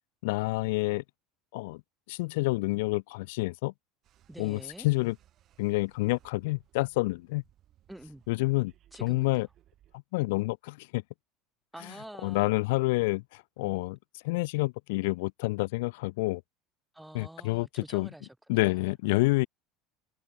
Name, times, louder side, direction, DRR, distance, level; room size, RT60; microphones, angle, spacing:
voice 1, 0.2-1.0 1.5-1.8 2.1-3.7 4.4-5.2 5.6-7.4 8.3-8.7 9.0-9.5 10.1-11.0 12.2-16.4 17.1-18.1 18.5-19.5, left 23 dB, 80° left, 0.6 m, -28 dB
sound 1, 4.0-10.0, right 12 dB, 45° right, 7.7 m, -63 dB
voice 2, 4.3-4.9 7.9-8.2 8.9-9.4 11.7-12.5 16.9-18.9, right 1 dB, 5° right, 1.3 m, -47 dB
supercardioid pair, 115°, 0 cm